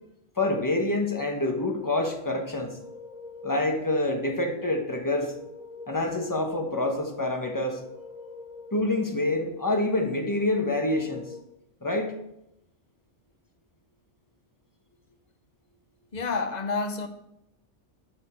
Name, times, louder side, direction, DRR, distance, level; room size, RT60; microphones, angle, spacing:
voice 1, 0.4-2.8 3.4-5.3 5.9-7.8 8.7-11.3 11.8-12.1, left 2 dB, 15° left, 1.1 m, -27 dB
sound 1, 1.2-11.4, left 3 dB, 5° right, 1.6 m, -45 dB
voice 2, 16.1-17.1, left 4 dB, 40° left, 0.9 m, -29 dB
11.5 x 6.3 x 4.5 m
omnidirectional pair, 1.2 m